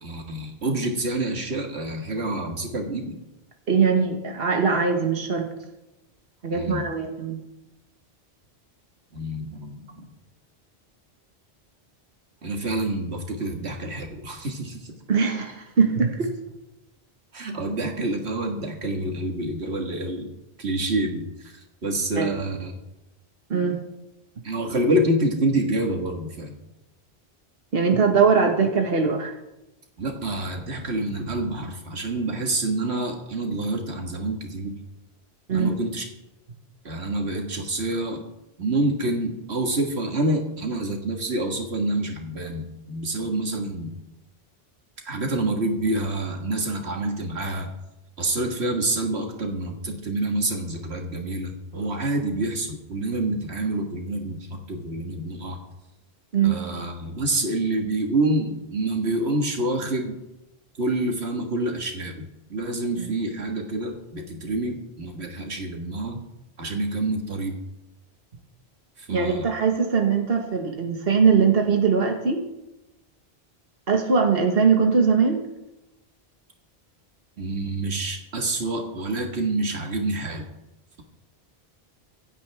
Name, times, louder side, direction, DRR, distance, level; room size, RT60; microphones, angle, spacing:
voice 1, 0.0-3.2 6.5-6.9 9.1-10.0 12.4-15.0 17.3-20.3 20.6-22.7 24.4-26.5 30.0-34.8 35.5-36.1 36.8-38.2 38.6-43.9 45.0-47.7 48.2-55.6 56.4-60.2 60.8-66.2 66.6-67.6 69.0-69.4 77.4-80.5, right 2 dB, 85° right, 3 dB, 2.0 m, -27 dB
voice 2, 3.7-5.5 6.4-7.4 15.1-16.3 22.1-22.3 23.5-23.8 27.7-29.4 35.5-35.7 56.3-56.6 63.0-63.1 69.1-72.4 73.9-75.4, right 5 dB, 65° right, 3 dB, 1.7 m, -21 dB
25.0 x 9.2 x 3.5 m, 0.95 s
omnidirectional pair, 1.1 m